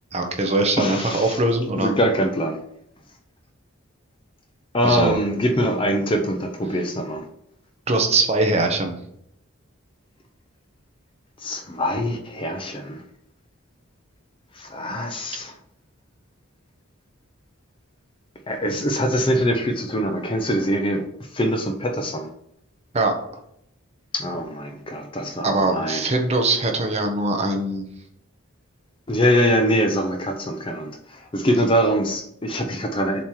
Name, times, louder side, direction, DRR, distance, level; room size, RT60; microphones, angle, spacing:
voice 1, 0.1-1.9 4.8-5.2 7.9-8.9 22.9-23.2 25.4-27.8, right 2 dB, 30° right, 3 dB, 0.9 m, -21 dB
voice 2, 0.8-1.4 1.8-2.6 4.7-7.2 11.4-13.0 14.6-15.6 18.5-21.0 21.3-22.3 24.1-26.1 29.1-33.2, equal, 25° left, 5 dB, 0.6 m, -23 dB
7.1 x 3.0 x 4.7 m, 0.74 s
head